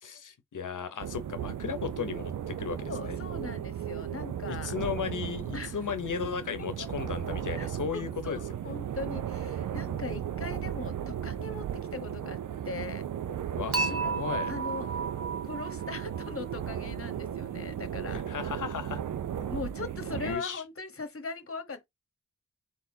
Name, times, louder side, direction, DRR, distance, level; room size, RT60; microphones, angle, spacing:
voice 1, 0.0-3.2 4.5-8.8 13.5-14.5 18.1-19.0 20.1-20.6, left 7 dB, 90° left, 0.8 m, -36 dB
sound 1, 1.0-20.4, right 9 dB, 85° right, 0.5 m, -36 dB
voice 2, 2.9-4.7 5.5-5.8 7.0-7.1 7.6-12.4 12.6-13.0 13.9-14.9 15.4-18.2 19.5-21.9, left 4 dB, 45° left, 1.1 m, -40 dB
Dishes pots and pans / Chink clink, 13.7-16.9, right 4 dB, 50° right, 1.1 m, -34 dB
4.1 x 3.7 x 2.7 m
cardioid pair, 55°, 30 cm